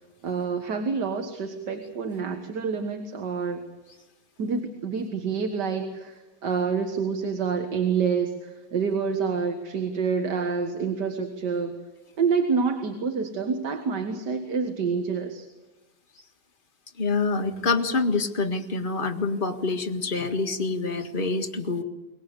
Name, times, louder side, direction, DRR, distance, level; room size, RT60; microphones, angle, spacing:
voice 1, 0.2-3.6 4.4-11.8 12.2-15.5, right 5 dB, 70° right, 6 dB, 2.2 m, -27 dB
voice 2, 17.0-21.8, left 3 dB, 30° left, 5 dB, 1.8 m, -26 dB
23.5 x 20.5 x 8.3 m, 1.1 s
omnidirectional pair, 1.9 m